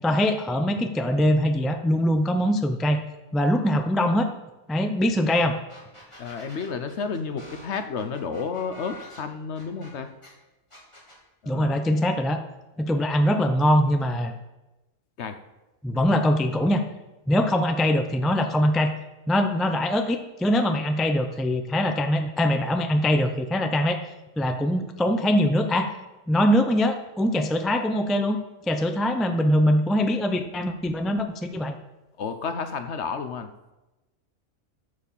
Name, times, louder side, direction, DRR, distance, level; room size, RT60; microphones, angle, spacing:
voice 1, 0.0-3.0 3.3-4.3 4.7-5.6 11.5-12.4 12.8-14.3 15.8-16.8 17.3-18.9 19.3-24.0 24.4-25.9 26.3-28.4 28.7-31.7, equal, ahead, 7 dB, 0.4 m, -22 dB
sound 1, 5.3-5.4 5.7-10.3 10.7-11.2, left 1 dB, 20° left, 2.8 m, -47 dB
voice 2, 6.2-10.1 11.4-11.8 15.2-15.4 15.9-16.1 32.2-33.5, left 5 dB, 60° left, 8 dB, 1.0 m, -31 dB
13.0 x 4.9 x 7.1 m, 1.0 s
omnidirectional pair, 1.4 m